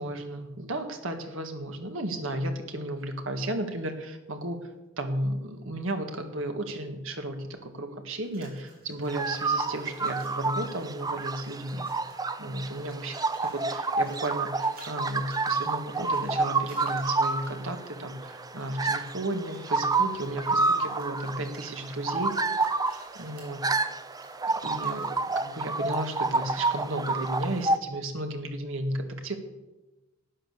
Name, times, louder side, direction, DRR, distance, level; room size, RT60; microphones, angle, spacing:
voice 1, 0.0-4.7 5.0-11.9 12.4-13.1 13.5-22.3 23.2-23.7 24.4-29.4, right 1 dB, 65° right, 5 dB, 1.7 m, -34 dB
sound 1, 8.1-9.4 9.7-12.3 12.6-17.7 18.3-19.2 19.5-25.3, right 2 dB, 45° right, 4.3 m, -56 dB
sound 2, 9.1-27.8, right 3 dB, 20° right, 0.5 m, -29 dB
12.0 x 9.1 x 6.7 m, 1.0 s
head